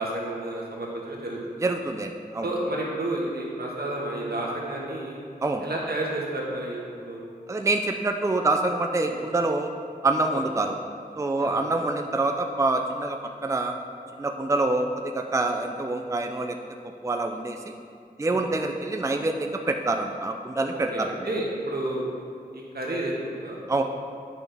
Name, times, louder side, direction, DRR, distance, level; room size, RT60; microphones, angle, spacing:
voice 1, 0.0-1.6 2.4-5.2 5.6-7.2 9.0-9.2 11.4-11.6 18.2-18.4 20.9-22.0 22.5-23.6, right 1 dB, 80° right, -3 dB, 1.4 m, -31 dB
voice 2, 1.6-2.5 5.4-5.6 7.5-9.7 10.0-10.7 11.2-13.7 14.2-14.9 15.1-16.6 17.0-17.7 18.2-21.1 23.7-23.8, right 2 dB, 20° right, 4 dB, 0.4 m, -26 dB
9.1 x 5.9 x 3.4 m, 2.4 s
wide cardioid pair, 65°, 16 cm